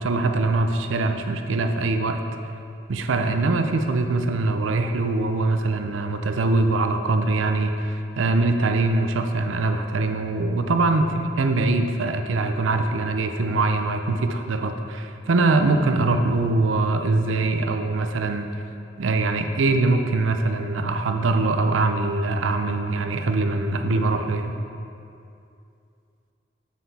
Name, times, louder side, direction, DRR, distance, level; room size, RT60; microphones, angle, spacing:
voice 1, 0.0-2.2 2.9-11.0 11.4-18.5 19.0-24.6, right 3 dB, 90° right, 6 dB, 0.5 m, -23 dB
7.3 x 5.9 x 4.1 m, 2.5 s
head